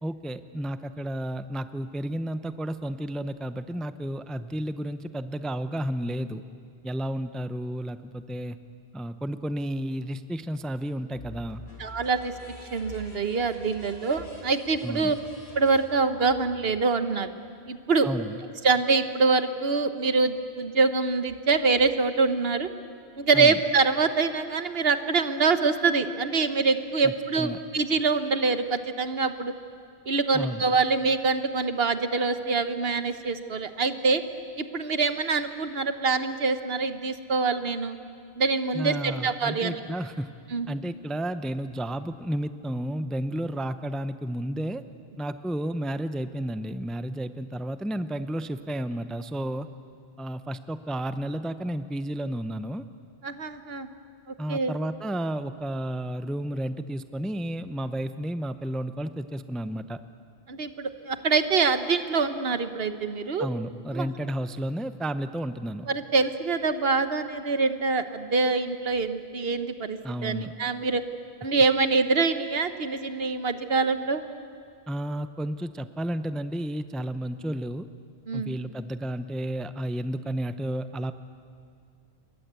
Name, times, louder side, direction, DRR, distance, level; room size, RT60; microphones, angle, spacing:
voice 1, 0.0-6.4 6.8-8.6 8.9-11.6 14.8-15.1 18.0-18.4 23.3-23.6 27.0-27.6 30.3-30.6 38.7-40.3 40.7-44.8 45.2-49.7 50.2-52.8 54.4-60.0 63.4-65.9 70.0-70.5 74.9-77.9 78.3-81.1, right 1 dB, ahead, 11 dB, 0.6 m, -32 dB
sound 1, 11.2-16.8, left 2 dB, 85° left, 4.6 m, -47 dB
voice 2, 11.8-12.3 12.7-15.1 15.5-17.3 17.7-18.1 18.6-22.7 23.2-29.5 30.1-34.2 34.6-38.0 38.4-39.7 40.5-40.7 53.2-53.9 54.3-54.7 60.5-63.5 63.9-64.1 65.9-71.0 71.4-74.2 78.3-78.5, right 4 dB, 70° right, 10 dB, 1.4 m, -25 dB
28.5 x 22.5 x 8.3 m, 2.3 s
omnidirectional pair, 1.1 m